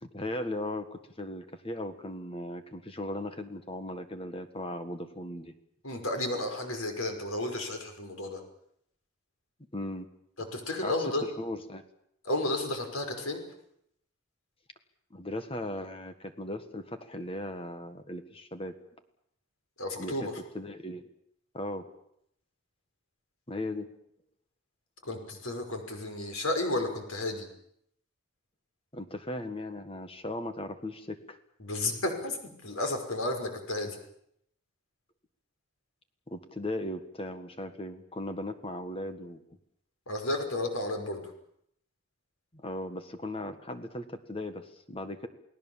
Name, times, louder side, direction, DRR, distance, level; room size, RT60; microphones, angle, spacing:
voice 1, 0.0-5.5 9.7-10.1 10.8-10.9 11.2-11.8 15.1-18.7 20.0-20.3 20.5-21.1 21.5-21.9 23.5-23.9 28.9-31.4 36.3-39.4 42.5-45.3, left 1 dB, 25° left, 9 dB, 1.6 m, -37 dB
voice 2, 5.8-8.4 10.4-11.3 12.2-13.4 19.8-20.4 25.0-27.5 31.6-34.0 40.1-41.3, left 2 dB, 85° left, 4 dB, 5.7 m, -32 dB
29.5 x 18.5 x 7.3 m, 0.73 s
head